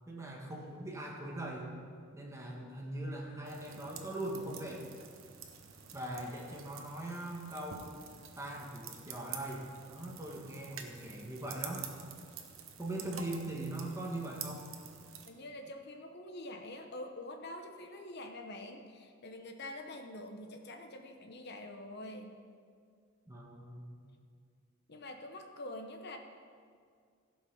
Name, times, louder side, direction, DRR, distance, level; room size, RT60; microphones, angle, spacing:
voice 1, 0.1-1.7 2.1-4.9 5.9-7.9 8.4-11.9 12.8-14.7 23.3-24.1, right 1 dB, 15° right, -1 dB, 1.5 m, -41 dB
sound 1, 3.4-15.3, right 7 dB, 85° right, 1.0 m, -49 dB
voice 2, 15.3-22.3 24.9-26.2, left 1 dB, 55° left, 4 dB, 0.9 m, -46 dB
16.0 x 5.6 x 5.7 m, 2.1 s
head